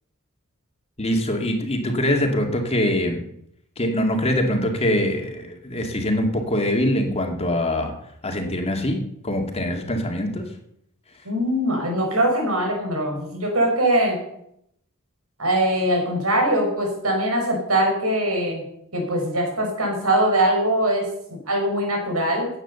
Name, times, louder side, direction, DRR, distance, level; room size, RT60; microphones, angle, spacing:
voice 1, 1.0-3.2 3.8-7.9 8.2-10.5, left 1 dB, 30° left, 3 dB, 2.2 m, -23 dB
voice 2, 11.2-14.2 15.4-18.6 18.9-21.1 21.5-22.5, right 1 dB, 80° right, 2 dB, 5.8 m, -22 dB
15.5 x 9.1 x 6.9 m, 0.75 s
head